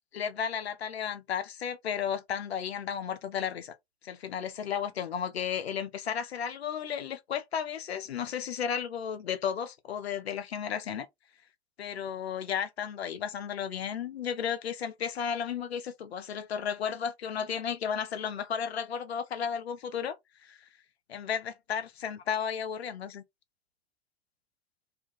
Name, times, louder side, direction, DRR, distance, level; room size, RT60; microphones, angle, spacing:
voice 1, 0.1-3.7 4.0-11.1 11.8-20.2 20.4-20.6 21.1-23.2, left 8 dB, 85° left, 0.6 m, -33 dB
2.5 x 2.2 x 2.4 m
figure-of-eight pair, 85°, 31 cm